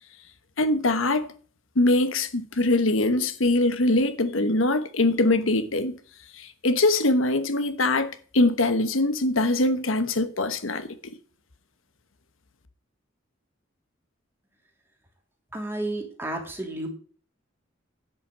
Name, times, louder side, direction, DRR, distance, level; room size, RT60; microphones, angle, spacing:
voice 1, 0.6-1.3 1.7-5.9 6.3-10.9, left 2 dB, 90° left, 1.2 m, -23 dB
voice 2, 15.5-16.9, right 1 dB, 10° right, 2.7 m, -31 dB
11.0 x 5.8 x 7.4 m
head